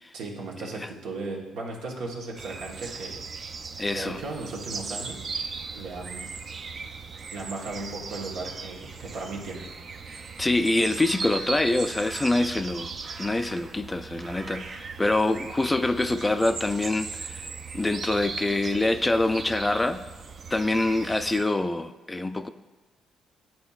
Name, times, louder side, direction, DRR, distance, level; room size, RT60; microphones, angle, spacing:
voice 1, 0.1-3.2 3.9-5.3 5.7-6.3 7.3-9.7, right 3 dB, 85° right, -2 dB, 1.2 m, -36 dB
sound 1, 2.4-21.4, right 4 dB, 50° right, 0.5 m, -38 dB
voice 2, 3.8-4.2 10.4-17.5 17.7-20.0 20.5-22.5, left 2 dB, 15° left, 10 dB, 0.3 m, -25 dB
10.5 x 4.3 x 2.3 m, 1.1 s
cardioid pair, 90°, 0 cm